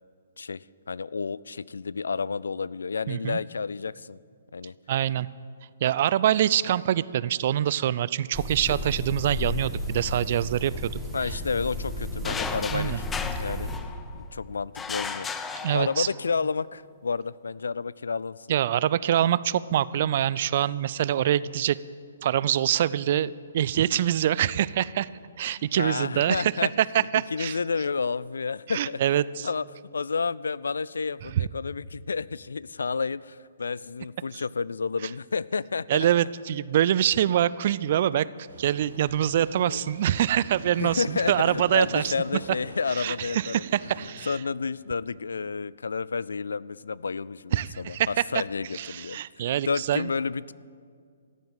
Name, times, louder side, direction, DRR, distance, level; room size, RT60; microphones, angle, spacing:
voice 1, 0.4-4.2 4.5-4.7 11.1-13.7 14.1-15.3 15.7-18.4 25.8-26.7 27.1-29.0 29.4-29.7 29.9-36.1 39.6-39.9 40.8-43.7 44.0-50.5, left 5 dB, 75° left, 21 dB, 0.3 m, -30 dB
voice 2, 3.1-3.4 4.9-5.3 5.8-10.9 12.7-13.0 15.6-16.1 18.5-21.8 22.2-25.1 25.4-26.5 26.8-27.6 28.7-29.5 31.4-31.5 35.9-38.3 38.6-42.1 42.9-44.4 47.5-48.1 48.7-50.1, right 11 dB, 50° right, 19 dB, 0.4 m, -25 dB
sound 1, 8.3-13.8, left 2 dB, 5° right, 1.6 m, -33 dB
sound 2, 12.2-14.2 14.8-16.3, left 5 dB, 10° left, 0.7 m, -35 dB
sound 3, 38.5-44.1, right 2 dB, 75° right, 4.6 m, -44 dB
14.5 x 7.9 x 9.0 m, 2.2 s
figure-of-eight pair, 130°, 0 cm